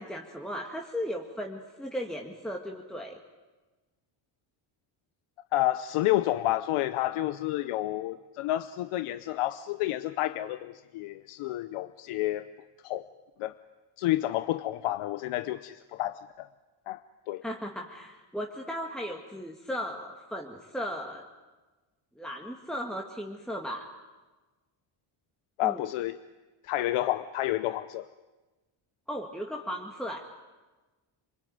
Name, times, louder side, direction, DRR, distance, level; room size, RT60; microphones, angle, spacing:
voice 1, 0.0-3.2 17.4-21.2 22.2-23.9 25.6-25.8 29.1-30.3, equal, ahead, 1 dB, 1.9 m, -36 dB
voice 2, 5.5-12.5 12.8-13.1 13.4-13.5 14.0-16.5 16.9-17.0 17.3-17.4 25.6-26.2 26.6-28.1, left 15 dB, 85° left, 14 dB, 0.8 m, -30 dB
28.0 x 21.0 x 9.4 m, 1.2 s
cardioid pair, 105°, 49 cm